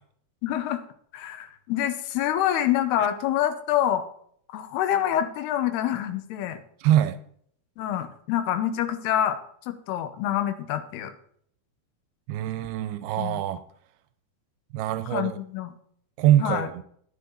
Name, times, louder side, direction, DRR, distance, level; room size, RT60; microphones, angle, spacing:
voice 1, 0.4-0.8 1.1-4.1 4.5-6.6 7.8-9.4 9.7-11.1 13.2-13.4 15.1-15.7 16.4-16.7, left 11 dB, 85° left, 11 dB, 2.9 m, -26 dB
voice 2, 6.8-7.2 12.3-13.6 14.7-15.4 16.2-16.8, right 12 dB, 85° right, 13 dB, 2.5 m, -23 dB
10.0 x 8.7 x 5.5 m, 0.62 s
omnidirectional pair, 4.6 m